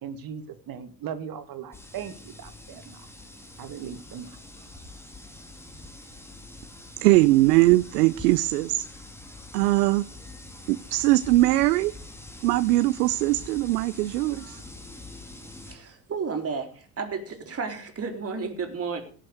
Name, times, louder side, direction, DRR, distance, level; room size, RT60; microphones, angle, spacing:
voice 1, 0.0-3.1 3.6-4.3, right 8 dB, 45° right, 2.3 m, -38 dB
sound 1, 1.7-15.7, left 2 dB, 5° left, 2.6 m, -45 dB
voice 2, 7.0-8.9 9.5-10.0 10.7-11.9 12.4-14.6, right 18 dB, 70° right, 0.8 m, -21 dB
voice 3, 15.7-19.0, right 5 dB, 30° right, 3.6 m, -32 dB
17.0 x 7.7 x 6.6 m
hypercardioid pair, 75°, 48 cm